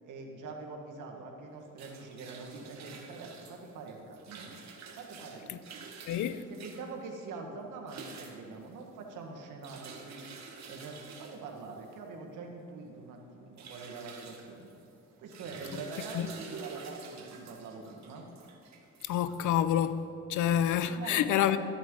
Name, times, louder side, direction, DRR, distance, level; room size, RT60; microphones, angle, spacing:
voice 1, 0.0-4.5 5.0-5.7 6.5-10.3 10.7-14.7 15.2-18.2 20.9-21.6, right 4 dB, 85° right, 1 dB, 1.5 m, -44 dB
sound 1, 1.5-20.0, right 4 dB, 65° right, 1.5 m, -49 dB
voice 2, 6.1-6.4 16.1-16.3 19.1-20.0 20.3-21.6, left 10 dB, 80° left, 13 dB, 0.6 m, -27 dB
12.5 x 9.0 x 3.7 m, 2.7 s
cardioid pair, 90°, 30 cm